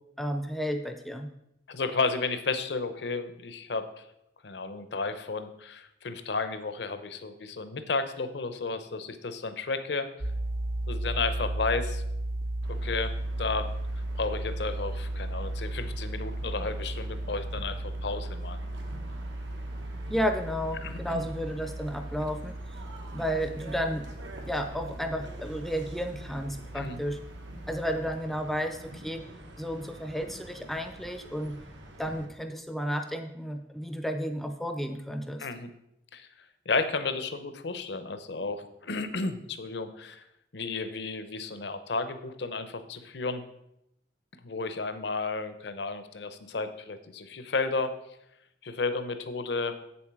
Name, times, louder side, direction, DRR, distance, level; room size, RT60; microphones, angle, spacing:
voice 1, 0.2-1.3 20.1-22.5 23.1-24.1 24.4-27.2 27.7-29.2 29.6-31.6 32.0-35.5, equal, ahead, 7 dB, 0.5 m, -32 dB
voice 2, 1.7-4.0 4.4-10.1 10.9-12.0 12.7-13.7 14.1-18.6 20.8-21.2 26.7-27.0 35.4-35.7 36.1-36.3 36.7-40.2 40.5-43.4 44.4-47.9 48.6-49.7, left 4 dB, 65° left, 10 dB, 0.7 m, -32 dB
sound 1, 10.2-28.2, right 1 dB, 50° right, 0.6 m, -35 dB
sound 2, 12.6-32.3, right 1 dB, 85° right, 1.5 m, -47 dB
8.0 x 7.1 x 4.7 m, 0.80 s
head